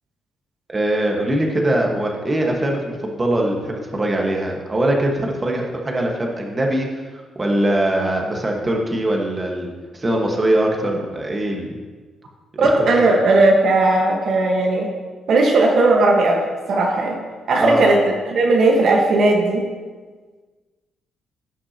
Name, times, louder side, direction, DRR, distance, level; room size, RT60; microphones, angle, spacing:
voice 1, 0.7-11.8 12.7-13.2 17.6-17.8, right 1 dB, 25° right, 0 dB, 1.5 m, -22 dB
voice 2, 12.6-14.9 15.3-17.2 17.5-19.7, right 2 dB, 60° right, 1 dB, 1.4 m, -17 dB
16.5 x 6.0 x 2.9 m, 1.4 s
cardioid pair, 90°, 0 cm